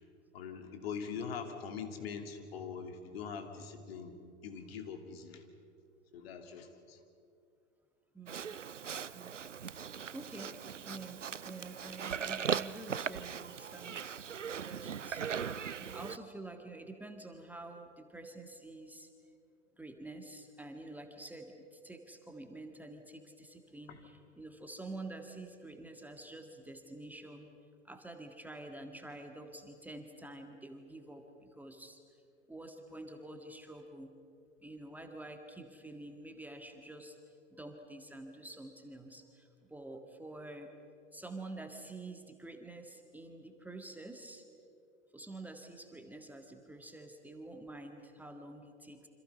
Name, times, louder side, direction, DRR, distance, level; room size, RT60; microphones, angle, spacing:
voice 1, 0.3-4.2 4.4-5.5 6.1-7.0 23.9-24.0, left 6 dB, 55° left, 5 dB, 3.0 m, -43 dB
voice 2, 8.1-8.6 9.1-10.5 10.9-14.2 14.6-19.1 19.8-27.5 27.8-32.0 32.5-34.1 34.6-37.2 37.5-40.7 41.1-44.4 45.1-49.1, right 2 dB, 5° right, 4 dB, 1.8 m, -48 dB
Livestock farm animals working animals, 8.3-16.2, right 7 dB, 85° right, 0.6 m, -39 dB
28.0 x 26.0 x 5.6 m, 2.4 s
figure-of-eight pair, 100°, 36 cm